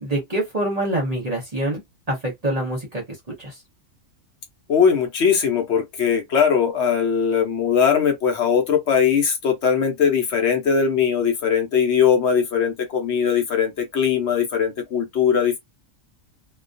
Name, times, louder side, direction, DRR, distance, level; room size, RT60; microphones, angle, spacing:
voice 1, 0.0-1.8 2.1-3.0 3.4-3.6, right 1 dB, 35° right, 0.7 m, -25 dB
voice 2, 4.7-15.6, left 7 dB, 65° left, 0.9 m, -20 dB
2.3 x 2.2 x 2.5 m
omnidirectional pair, 1.4 m